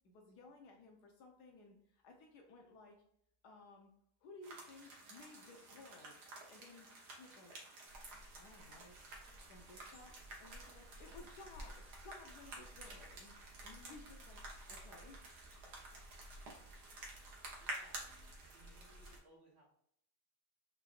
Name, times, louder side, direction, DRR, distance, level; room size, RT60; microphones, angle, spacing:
voice 1, 0.0-3.0 3.4-3.9 4.2-6.2 6.5-6.9 7.1-7.5 8.3-9.0 9.4-13.3 13.6-14.4 14.7-15.2, left 3 dB, 80° left, 1 dB, 1.2 m, -57 dB
sound 1, 4.4-19.2, right 2 dB, 75° right, 1.6 m, -52 dB
sound 2, 7.9-19.2, equal, 50° left, 1.2 m, -57 dB
voice 2, 17.6-19.7, right 2 dB, 50° right, -4 dB, 1.5 m, -65 dB
4.7 x 3.5 x 2.5 m, 0.70 s
omnidirectional pair, 1.7 m